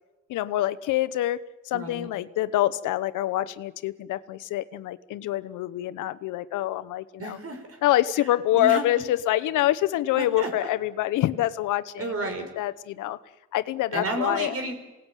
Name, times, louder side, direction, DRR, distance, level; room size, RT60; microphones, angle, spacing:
voice 1, 0.3-1.4 1.6-7.4 7.8-12.3 12.6-13.2 13.5-14.5, left 14 dB, 90° left, 14 dB, 1.0 m, -26 dB
voice 2, 1.7-2.1 7.2-7.8 8.5-8.8 10.1-10.7 12.0-12.5 13.9-14.7, right 2 dB, 50° right, 6 dB, 5.4 m, -31 dB
27.5 x 18.5 x 9.2 m, 1.1 s
cardioid pair, 90°, 30 cm